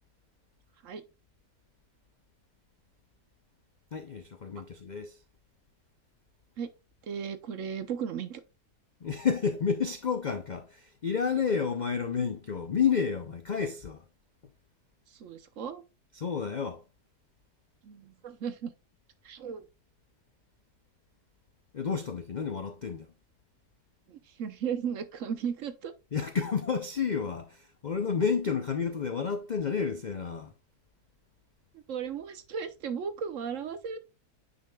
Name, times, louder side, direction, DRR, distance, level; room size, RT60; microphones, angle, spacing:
voice 1, 3.9-5.1 9.0-14.0 16.2-16.8 21.7-23.1 26.1-30.5, left 6 dB, 80° left, 0.4 m, -30 dB
voice 2, 7.0-8.4 15.1-15.8 17.8-18.7 19.2-19.6 24.1-25.9 31.9-34.0, right 7 dB, 60° right, 1.0 m, -35 dB
9.1 x 5.1 x 2.3 m
omnidirectional pair, 1.7 m